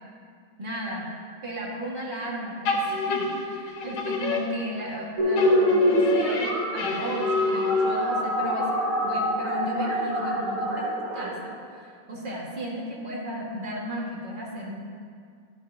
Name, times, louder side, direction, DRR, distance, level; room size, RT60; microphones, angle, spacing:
voice 1, 0.6-1.1 1.4-14.8, equal, 25° right, -3 dB, 1.3 m, -35 dB
sound 1, 2.6-5.0 5.4-8.2, left 3 dB, 60° left, 1.5 m, -28 dB
sound 2, 5.2-11.3, equal, 60° right, 3.1 m, -25 dB
13.5 x 8.2 x 2.6 m, 2.2 s
omnidirectional pair, 2.4 m